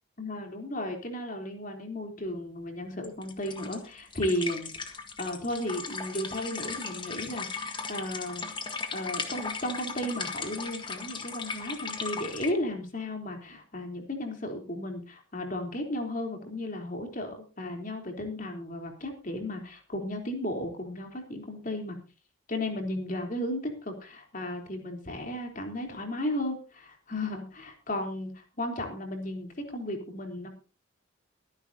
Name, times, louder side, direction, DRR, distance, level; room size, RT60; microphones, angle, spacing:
voice 1, 0.2-8.4 8.9-22.0 22.5-30.5, left 1 dB, 40° left, 3 dB, 3.5 m, -34 dB
sound 1, 3.0-12.5, left 4 dB, 25° left, 1.7 m, -37 dB
23.5 x 10.5 x 2.8 m, 0.33 s
head